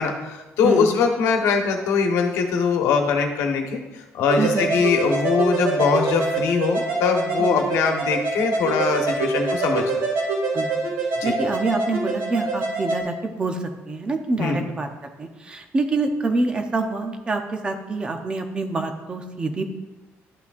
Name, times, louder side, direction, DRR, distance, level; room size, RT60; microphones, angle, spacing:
voice 1, 0.0-10.0 11.2-11.3 14.4-14.7, left 5 dB, 85° left, 3 dB, 1.1 m, -22 dB
sound 1, 4.3-13.0, right 3 dB, 70° right, 2.1 m, -25 dB
voice 2, 4.4-4.7 7.4-7.6 10.5-10.7 11.2-14.9 15.2-19.6, right 3 dB, 20° right, 5 dB, 0.6 m, -26 dB
11.5 x 5.9 x 2.5 m, 1.1 s
cardioid pair, 180°, 5 cm